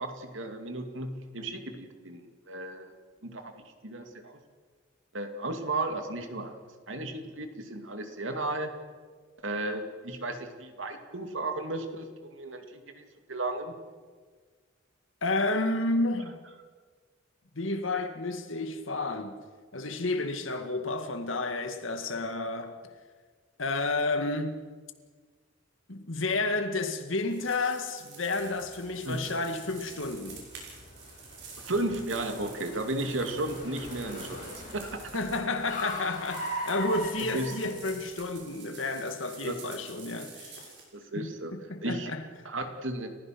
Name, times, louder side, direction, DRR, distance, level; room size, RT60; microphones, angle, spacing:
voice 1, 0.0-2.9 3.2-3.5 3.8-4.4 5.1-6.6 6.9-8.7 9.4-13.0 13.3-13.7 29.1-29.3 31.6-35.1 37.2-37.5 39.4-39.6 40.9-41.5 41.8-42.1 42.4-43.1, right 2 dB, 85° right, 2.6 m, -34 dB
voice 2, 15.2-16.4 17.5-19.4 19.7-22.8 23.6-24.7 25.9-30.5 35.1-40.7 41.2-41.3 41.7-42.3, left 2 dB, 90° left, 2.0 m, -31 dB
sound 1, 27.2-40.8, right 5 dB, 60° right, 6.3 m, -49 dB
Car, 28.4-38.3, equal, 40° left, 5.5 m, -41 dB
30.0 x 15.5 x 6.1 m
head